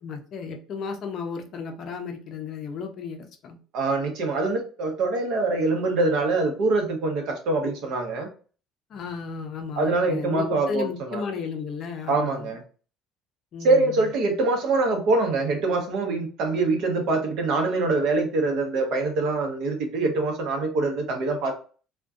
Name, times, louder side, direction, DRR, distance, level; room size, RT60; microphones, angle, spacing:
voice 1, 0.0-3.6 8.9-12.5 13.5-14.1, left 5 dB, 40° left, 5 dB, 0.4 m, -34 dB
voice 2, 3.7-8.3 9.8-11.2 12.1-12.6 13.6-21.6, right 3 dB, 60° right, 4 dB, 0.7 m, -24 dB
2.6 x 2.1 x 2.3 m, 0.39 s
cardioid pair, 160°, 0 cm